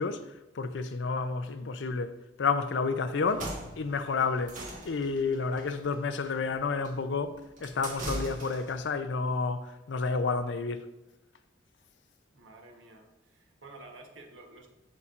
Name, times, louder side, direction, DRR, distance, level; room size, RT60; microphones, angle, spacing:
voice 1, 0.0-10.9, left 4 dB, 70° left, 0.5 m, -31 dB
sound 1, 3.2-8.8, right 1 dB, 45° right, 1.5 m, -41 dB
voice 2, 12.3-14.7, right 2 dB, 80° right, 1.1 m, -51 dB
11.0 x 4.1 x 2.5 m
head